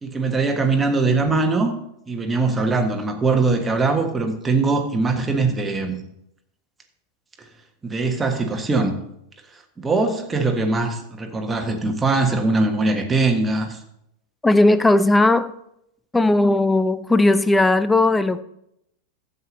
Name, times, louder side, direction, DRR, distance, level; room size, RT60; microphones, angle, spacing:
voice 1, 0.0-1.7 2.1-6.0 7.8-9.0 9.8-13.8, right 3 dB, 15° right, 1.5 m, -21 dB
voice 2, 14.4-15.5 16.1-18.4, left 2 dB, 10° left, 0.6 m, -17 dB
12.5 x 8.3 x 4.1 m
figure-of-eight pair, 90°, 0 cm